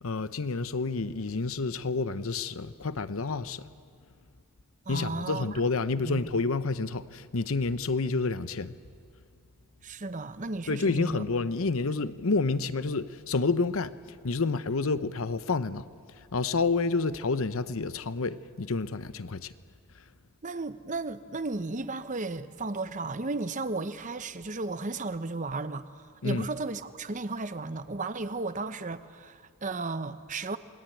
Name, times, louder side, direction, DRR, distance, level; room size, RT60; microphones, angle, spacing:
voice 1, 0.0-3.6 4.9-8.8 10.7-15.8 16.2-19.5 26.2-26.5, left 3 dB, 70° left, 0.8 m, -29 dB
voice 2, 4.9-5.5 6.0-6.2 9.8-11.2 20.4-30.6, right 3 dB, 35° right, 0.8 m, -34 dB
28.0 x 21.0 x 9.1 m
head